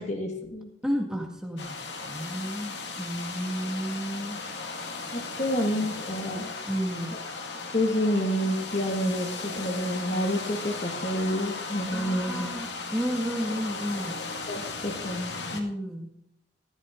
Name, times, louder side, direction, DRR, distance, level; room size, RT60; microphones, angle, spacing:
voice 1, 0.0-0.7 5.1-6.5 7.7-12.5 14.5-15.4, equal, 40° left, 3 dB, 2.0 m, -28 dB
voice 2, 0.8-1.7 2.0-4.4 6.6-7.2 11.9-14.2 15.5-16.1, equal, 5° right, 1 dB, 1.9 m, -32 dB
sound 1, 1.6-15.6, left 4 dB, 70° left, 2.0 m, -36 dB
14.5 x 12.5 x 3.8 m, 0.78 s
head